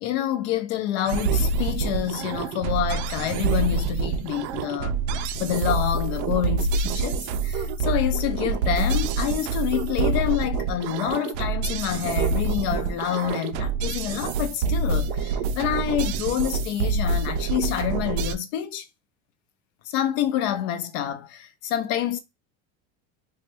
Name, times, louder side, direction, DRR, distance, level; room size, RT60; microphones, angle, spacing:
voice 1, 0.0-4.9 5.4-18.9 19.9-22.2, left 11 dB, 75° left, 0.7 m, -27 dB
sound 1, 1.1-18.3, right 4 dB, 80° right, 0.5 m, -26 dB
3.2 x 2.2 x 2.8 m
cardioid pair, 165°, 33 cm